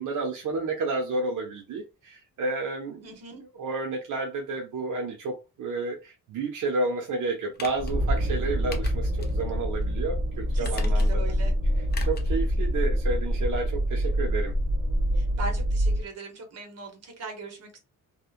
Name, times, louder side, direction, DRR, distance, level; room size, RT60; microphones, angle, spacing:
voice 1, 0.0-3.1 3.4-11.3 12.0-14.5, right 3 dB, 75° right, 0.6 m, -31 dB
voice 2, 3.0-3.4 10.5-11.5 15.1-17.8, right 2 dB, 55° right, 1.0 m, -39 dB
sound 1, 7.5-7.9 8.7-9.4 9.7-9.8 10.6-11.3 11.9-12.3 12.6-12.7, left 4 dB, 30° left, 0.5 m, -41 dB
sound 2, 7.7-16.0, equal, 35° right, 1.4 m, -26 dB
2.7 x 2.1 x 2.4 m
cardioid pair, 120°, 32 cm